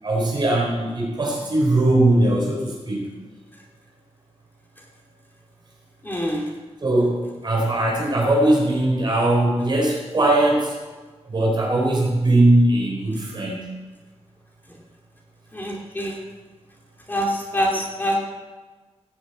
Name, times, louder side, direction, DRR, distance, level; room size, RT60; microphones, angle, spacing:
voice 1, 0.0-3.1 6.8-10.7 11.2-13.7, right 1 dB, 40° right, -2 dB, 3.8 m, -20 dB
voice 2, 6.0-6.4 15.5-16.2 17.1-18.2, equal, 15° left, -2 dB, 2.4 m, -25 dB
17.0 x 7.4 x 8.4 m, 1.3 s
wide cardioid pair, 175°, 11 cm